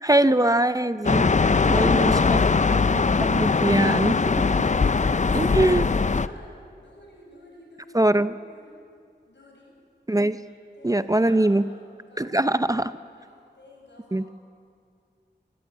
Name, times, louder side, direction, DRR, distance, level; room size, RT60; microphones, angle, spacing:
voice 1, 0.0-1.3 1.7-2.4 3.3-4.2 5.3-5.9 7.9-8.3 10.1-10.4 10.8-11.6 12.2-12.9 14.1-14.2, right 1 dB, 20° right, 12 dB, 0.6 m, -21 dB
sound 1, 1.0-6.3, left 4 dB, 40° left, 0.5 m, -21 dB
voice 2, 4.5-8.7 9.3-9.7 10.4-11.8 12.1-12.4 13.1-14.2, left 1 dB, 80° left, -1 dB, 6.8 m, -48 dB
24.5 x 14.5 x 9.4 m, 2.3 s
wide cardioid pair, 70°, 18 cm